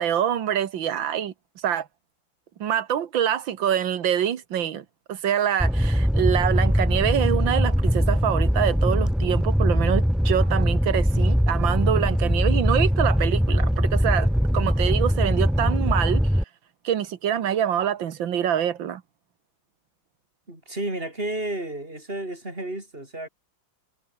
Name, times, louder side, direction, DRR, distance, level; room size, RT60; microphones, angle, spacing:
voice 1, 0.0-1.9 2.6-16.2 16.8-19.0, right 9 dB, 70° right, 2.0 m, -25 dB
Fire, 5.6-16.4, equal, ahead, 1.7 m, -21 dB
voice 2, 20.5-23.3, right 1 dB, 25° right, 7.4 m, -32 dB
omnidirectional pair, 2.2 m